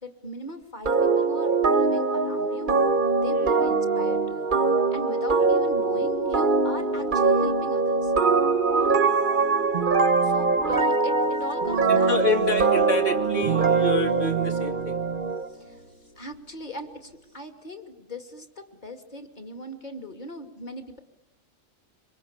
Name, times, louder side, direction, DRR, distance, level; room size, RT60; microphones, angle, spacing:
voice 1, 0.0-2.7 3.2-4.5 4.9-8.1 10.2-12.2 15.5-15.8 16.2-21.0, left 1 dB, 35° left, 6 dB, 2.7 m, -39 dB
sound 1, 0.9-15.5, right 4 dB, 40° right, 1.2 m, -22 dB
sound 2, 5.4-17.4, left 2 dB, 90° left, 6.5 m, -52 dB
voice 2, 11.9-15.0, left 3 dB, 65° left, 4 dB, 3.0 m, -28 dB
26.0 x 24.5 x 8.7 m, 0.95 s
omnidirectional pair, 1.4 m